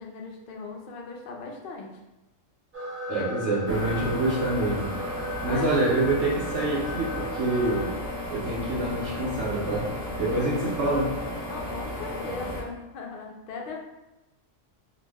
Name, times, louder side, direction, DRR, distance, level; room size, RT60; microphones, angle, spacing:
voice 1, 0.0-1.9 5.4-5.7 10.1-10.9 11.5-13.8, left 3 dB, 60° left, 0 dB, 0.5 m, -38 dB
sound 1, 2.7-7.9, equal, 50° right, 0.5 m, -36 dB
voice 2, 3.1-4.9 5.4-7.9 8.3-9.9 10.1-11.1, right 2 dB, 65° right, -4 dB, 0.9 m, -26 dB
sound 2, 3.7-12.6, left 1 dB, 20° left, 0.8 m, -34 dB
2.5 x 2.0 x 3.3 m, 0.96 s
omnidirectional pair, 1.3 m